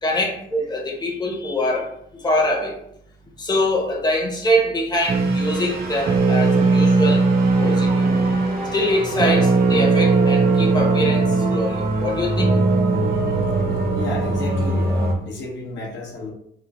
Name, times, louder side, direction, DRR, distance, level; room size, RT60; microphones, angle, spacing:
voice 1, 0.0-1.9 2.2-2.7 3.4-7.2 7.6-8.1 8.7-12.5, left 1 dB, 20° left, 0 dB, 0.8 m, -23 dB
sound 1, 4.9-15.1, right 1 dB, 50° right, 0.8 m, -26 dB
sound 2, 5.1-15.0, right 3 dB, 30° right, 0.4 m, -20 dB
voice 2, 13.9-16.3, left 2 dB, 70° left, -1 dB, 0.9 m, -32 dB
3.2 x 2.3 x 3.4 m, 0.71 s
cardioid pair, 90°, 20 cm